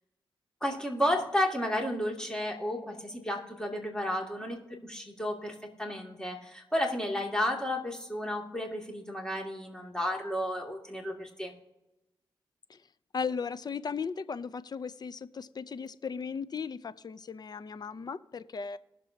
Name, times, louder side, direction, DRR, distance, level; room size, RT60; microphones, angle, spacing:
voice 1, 0.6-11.5, left 1 dB, 10° left, 2.6 m, -32 dB
voice 2, 12.7-18.8, left 5 dB, 45° left, 0.6 m, -37 dB
20.0 x 6.8 x 2.9 m
cardioid pair, 50°, 9 cm